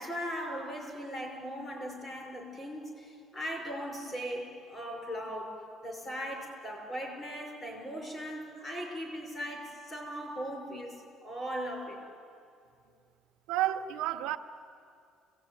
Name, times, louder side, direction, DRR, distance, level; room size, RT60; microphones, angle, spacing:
voice 1, 0.0-5.5 5.8-12.0, equal, 20° left, 1 dB, 5.7 m, -39 dB
voice 2, 13.5-14.4, right 13 dB, 90° right, 5 dB, 1.0 m, -30 dB
26.0 x 18.0 x 9.2 m, 2.4 s
cardioid pair, 165°, 0 cm